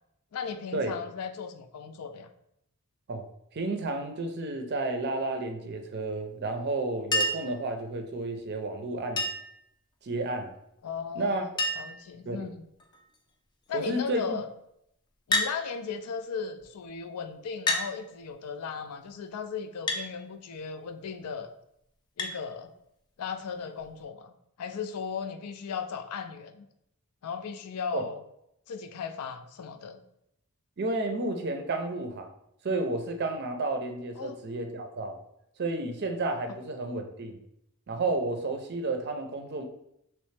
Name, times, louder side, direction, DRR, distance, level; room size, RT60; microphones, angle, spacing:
voice 1, 0.3-2.3 10.8-11.5 11.8-12.6 13.7-14.5 15.3-21.5 22.2-22.7 23.2-24.3 24.6-26.7 27.2-28.2 28.7-30.0 34.2-34.4, left 6 dB, 85° left, 8 dB, 0.4 m, -36 dB
voice 2, 3.5-9.2 10.0-10.5 11.2-11.4 12.3-12.5 13.7-14.4 27.9-28.1 30.8-32.3 32.6-35.2 35.6-37.4 37.9-39.6, right 2 dB, 50° right, 5 dB, 0.5 m, -31 dB
Chink clink, 7.1-7.6 9.2-9.6 10.9-11.0 11.2-11.3 11.6-12.0 12.8-13.2 15.3-15.6 16.6-16.7 17.7-17.9 19.9-20.1 22.2-22.4 23.8-23.9, left 1 dB, 20° left, 0.4 m, -28 dB
3.2 x 3.0 x 3.2 m, 0.77 s
head